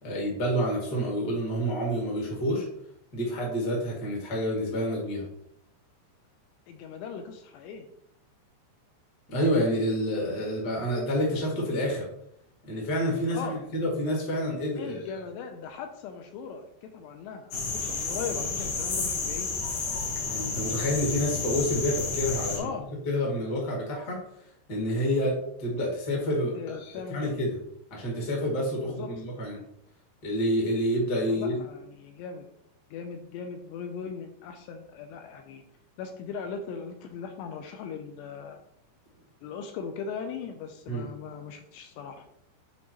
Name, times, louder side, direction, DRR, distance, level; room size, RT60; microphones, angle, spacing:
voice 1, 0.0-2.7 3.1-5.2 9.3-12.0 12.6-15.2 20.2-22.6 23.0-24.2 24.7-25.3 25.6-27.5 27.9-29.6 30.2-31.6 40.9-41.0, equal, 35° left, -3 dB, 1.6 m, -28 dB
voice 2, 6.7-7.9 13.3-13.6 14.8-19.5 22.5-22.9 26.5-27.4 28.8-29.1 31.3-32.5 32.9-35.6 36.0-38.6 39.4-42.2, left 6 dB, 85° left, 6 dB, 2.7 m, -39 dB
sound 1, 17.5-22.6, left 4 dB, 65° left, 2.1 m, -31 dB
9.0 x 4.4 x 2.9 m, 0.73 s
omnidirectional pair, 5.1 m